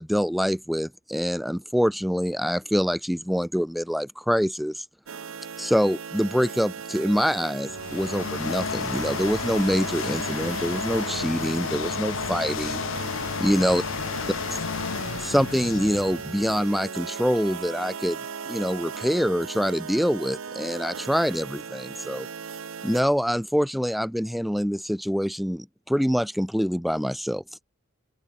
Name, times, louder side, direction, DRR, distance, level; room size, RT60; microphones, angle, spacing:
voice 1, 0.0-4.8 5.6-12.8 13.4-13.8 15.2-18.2 18.5-22.3 22.8-27.4, equal, ahead, 0.6 m, -25 dB
sound 1, 5.1-23.0, right 6 dB, 70° right, 0.7 m, -37 dB
sound 2, 7.6-16.7, left 6 dB, 65° left, 0.6 m, -32 dB
open air
head